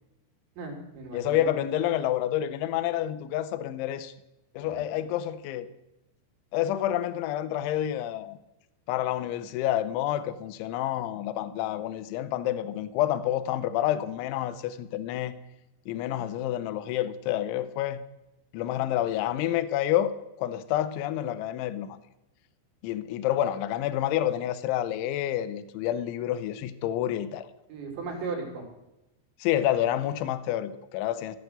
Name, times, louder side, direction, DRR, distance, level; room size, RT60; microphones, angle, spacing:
voice 1, 0.6-1.5 4.6-4.8 27.7-28.7, right 4 dB, 70° right, 5.3 m, -36 dB
voice 2, 1.1-4.1 4.5-5.7 6.5-8.4 8.9-15.3 15.9-18.0 18.5-20.1 20.4-22.0 22.8-27.5 29.4-31.4, left 12 dB, 80° left, 3.1 m, -28 dB
14.5 x 9.5 x 8.1 m
omnidirectional pair, 5.6 m